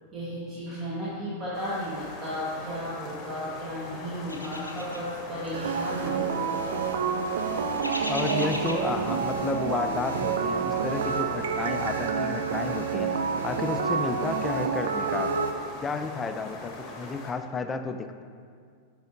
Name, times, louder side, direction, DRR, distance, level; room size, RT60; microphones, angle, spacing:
voice 1, 0.1-6.8, equal, 25° right, -8 dB, 1.2 m, -34 dB
sound 1, 1.5-17.3, left 2 dB, 35° left, 1.0 m, -42 dB
sound 2, 4.3-10.7, left 1 dB, 85° left, 0.5 m, -41 dB
sound 3, 5.5-15.5, right 6 dB, 60° right, 0.3 m, -28 dB
voice 2, 8.1-13.2 13.4-15.4 15.8-18.2, left 4 dB, 20° left, 8 dB, 0.3 m, -32 dB
9.0 x 4.8 x 2.5 m, 2.1 s
figure-of-eight pair, 90°, 0 cm